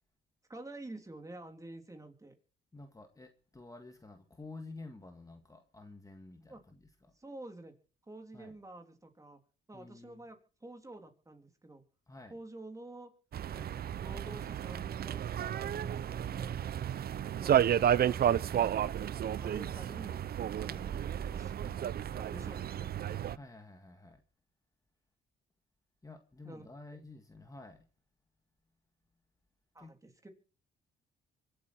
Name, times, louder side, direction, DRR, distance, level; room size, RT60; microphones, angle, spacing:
voice 1, 0.5-2.3 6.5-6.6 7.1-7.7 8.1-9.4 9.7-11.8 12.3-13.1 13.5-13.7 14.0-15.2 15.7-16.6 17.2-18.2 19.4-20.2 20.5-21.7 22.1-22.9 26.4-26.6 29.7-30.3, right 2 dB, 15° right, 3.4 m, -49 dB
voice 2, 2.7-7.2 8.3-8.6 9.7-10.2 12.1-12.4 20.6-21.5 23.3-24.2 26.0-27.8 29.8-29.9, left 2 dB, 15° left, 1.8 m, -51 dB
sound 1, 13.3-23.4, right 10 dB, 50° right, 0.6 m, -32 dB
25.0 x 8.6 x 4.5 m
cardioid pair, 90°, 20 cm